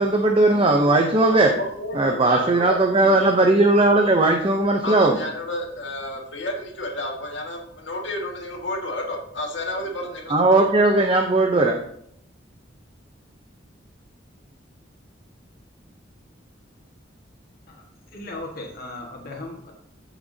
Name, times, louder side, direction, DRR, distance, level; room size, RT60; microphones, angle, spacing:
voice 1, 0.0-1.5 1.9-5.2 10.3-11.8, right 2 dB, 30° right, 2 dB, 0.7 m, -18 dB
voice 2, 1.3-2.8 4.8-10.6, left 1 dB, 70° left, 1 dB, 1.9 m, -31 dB
voice 3, 17.7-19.7, left 2 dB, 50° left, 0 dB, 1.7 m, -37 dB
14.0 x 6.0 x 2.8 m, 0.68 s
head